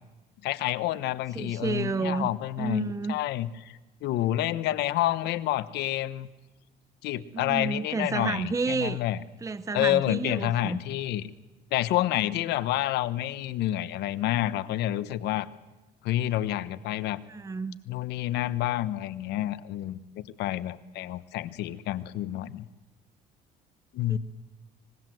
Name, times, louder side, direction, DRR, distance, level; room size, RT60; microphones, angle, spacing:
voice 1, 0.4-6.3 7.0-9.2 9.7-11.3 11.7-15.5 16.0-17.2 17.9-22.7 23.9-24.2, left 14 dB, 80° left, 15 dB, 1.2 m, -29 dB
voice 2, 1.3-2.3 2.6-3.2 7.3-9.0 9.4-10.8 17.3-17.8 24.1-24.2, right 4 dB, 20° right, 14 dB, 0.8 m, -30 dB
25.0 x 22.0 x 7.8 m, 1.1 s
cardioid pair, 110°, 17 cm